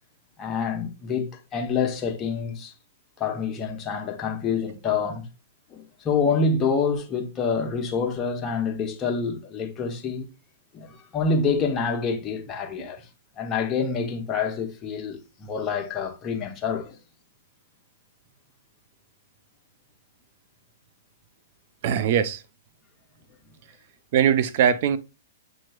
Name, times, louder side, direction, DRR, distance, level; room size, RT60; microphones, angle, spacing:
voice 1, 0.4-2.7 3.2-5.3 5.7-10.2 10.7-13.1 13.4-17.0, left 5 dB, 25° left, 0.9 m, -27 dB
voice 2, 21.8-22.4 24.1-25.0, right 8 dB, 55° right, 0.5 m, -21 dB
7.5 x 3.0 x 2.3 m
hypercardioid pair, 130°, 0 cm